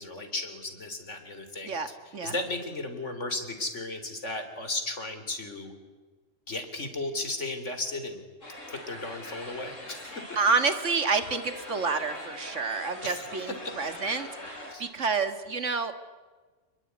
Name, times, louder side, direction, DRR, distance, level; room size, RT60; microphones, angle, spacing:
voice 1, 0.0-5.7 6.5-8.2 8.7-10.2 13.0-13.3 13.6-13.7 14.0-14.2 14.7-14.9, left 2 dB, 70° left, 8 dB, 3.8 m, -35 dB
sound 1, 8.4-14.7, left 1 dB, 85° left, 6.7 m, -43 dB
voice 2, 10.4-15.9, right 4 dB, 75° right, 9 dB, 2.3 m, -29 dB
28.5 x 21.0 x 9.6 m, 1.4 s
omnidirectional pair, 1.3 m